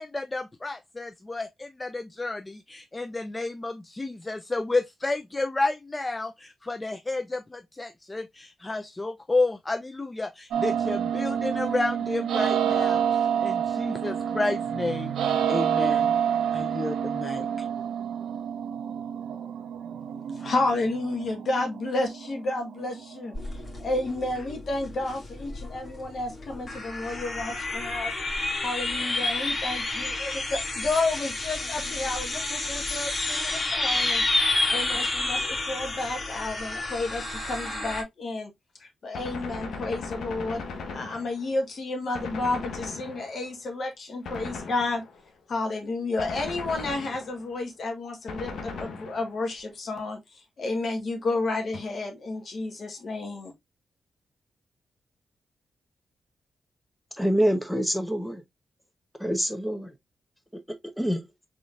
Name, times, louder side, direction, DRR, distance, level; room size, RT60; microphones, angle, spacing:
voice 1, 0.0-16.1 16.5-17.7, left 2 dB, 25° left, 0.5 m, -31 dB
sound 1, 10.5-24.4, right 8 dB, 85° right, 0.8 m, -28 dB
voice 2, 20.4-23.3 23.8-28.1 28.6-34.2 34.7-38.5 38.8-40.6 40.9-45.0 45.5-53.5, left 2 dB, 65° left, 1.5 m, -31 dB
sound 2, 23.3-38.0, left 2 dB, 45° left, 2.2 m, -30 dB
Gunshot gunfire, 39.1-41.6 42.1-43.6 44.2-45.3 46.2-47.6 48.3-49.5, left 4 dB, 80° left, 0.9 m, -38 dB
voice 3, 57.2-58.4 59.2-59.9 61.0-61.2, equal, 5° left, 1.0 m, -25 dB
3.8 x 3.7 x 2.5 m
cardioid pair, 55°, 0 cm